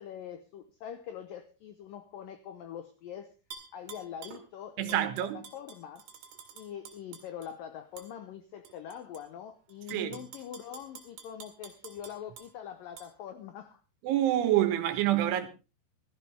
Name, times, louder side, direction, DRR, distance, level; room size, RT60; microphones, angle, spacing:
voice 1, 0.0-3.3 3.7-6.1 6.5-13.8, left 9 dB, 90° left, 1.9 m, -43 dB
Tap / Glass, 3.5-4.4 4.9-7.5 8.0-8.1 8.6-9.2 9.7-12.5 13.0-13.1, right 6 dB, 60° right, 3.8 m, -49 dB
voice 2, 4.8-5.4 9.9-10.2 14.0-15.5, right 13 dB, 85° right, 3.7 m, -27 dB
16.0 x 14.0 x 3.4 m
omnidirectional pair, 5.3 m